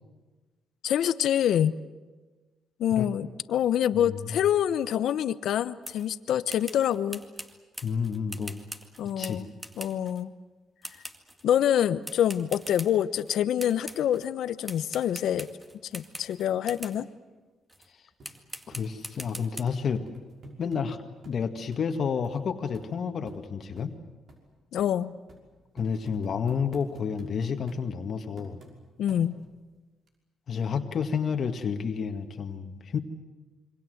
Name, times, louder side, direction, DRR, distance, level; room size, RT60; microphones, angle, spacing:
voice 1, 0.8-1.7 2.8-7.2 9.0-9.5 9.8-10.3 11.4-15.5 15.8-17.1 24.7-25.1 29.0-29.3, left 10 dB, 75° left, 13 dB, 0.9 m, -26 dB
voice 2, 3.9-4.4 7.8-8.6 9.2-9.4 18.7-20.0 20.6-21.0 21.2-24.0 25.7-28.6 30.5-33.0, left 6 dB, 55° left, 5 dB, 1.8 m, -30 dB
sound 1, 5.8-6.1 6.5-10.2 10.8-11.5 12.0-13.3 13.6-14.3 14.6-17.0 17.7-17.9 18.2-19.6, right 1 dB, 10° right, 2.1 m, -43 dB
sound 2, 18.2-18.3 18.7-18.8 19.2-19.3 19.7-20.8 21.2-21.4 21.7-21.8 22.2-22.4 22.7-22.9 23.3-23.4 23.8-23.9 24.3-24.4 24.8-24.9 25.3-25.4 25.8-27.3 27.7-27.9 28.4-28.7 29.1-29.5 30.1-30.2, right 1 dB, 55° right, 5.8 m, -47 dB
27.0 x 24.0 x 8.0 m, 1.3 s
cardioid pair, 90°, 0 cm